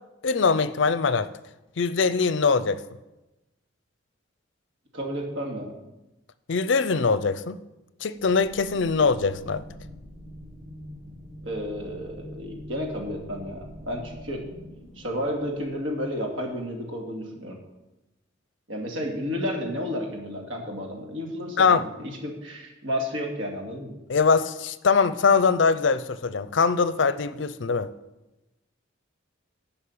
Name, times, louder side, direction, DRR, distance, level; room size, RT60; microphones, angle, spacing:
voice 1, 0.2-1.3 1.8-2.8 6.5-7.6 8.0-9.6 21.6-21.9 24.1-27.9, left 5 dB, 70° left, 0.5 m, -22 dB
voice 2, 4.9-5.7 11.4-14.4 15.0-17.6 18.7-24.0, equal, 80° right, 2.5 m, -32 dB
sound 1, 8.2-16.4, equal, 15° right, 4.4 m, -44 dB
11.5 x 5.5 x 8.5 m
head